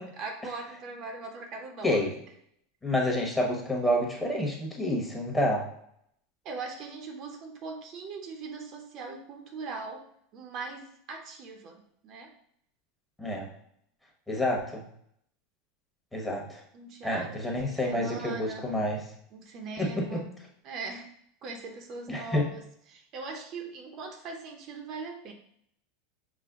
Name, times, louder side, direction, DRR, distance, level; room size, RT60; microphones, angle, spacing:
voice 1, 0.0-2.1 6.4-10.1 10.3-12.3 16.7-18.7 19.3-20.3 20.6-21.2 21.4-22.6 22.9-25.3, right 4 dB, 45° right, 3 dB, 0.6 m, -40 dB
voice 2, 2.8-5.7 13.2-13.5 14.3-14.8 16.1-16.6 17.0-19.0 19.8-20.2 22.1-22.5, left 1 dB, 10° left, -1 dB, 1.0 m, -28 dB
5.0 x 2.1 x 3.6 m, 0.69 s
supercardioid pair, 120°, 0 cm